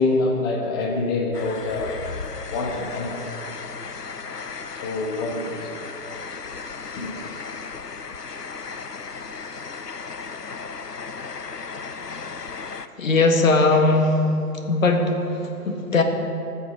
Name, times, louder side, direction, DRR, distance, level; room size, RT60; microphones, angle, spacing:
voice 1, 0.0-2.0 2.5-3.3 4.8-5.9 6.9-7.1, left 3 dB, 15° left, 1 dB, 1.1 m, -25 dB
sound 1, 1.3-12.9, left 5 dB, 90° left, 0.8 m, -35 dB
voice 2, 13.0-14.4 14.7-16.0, left 3 dB, 55° left, 4 dB, 1.9 m, -19 dB
20.0 x 8.6 x 4.9 m, 2.9 s
figure-of-eight pair, 140°, 47 cm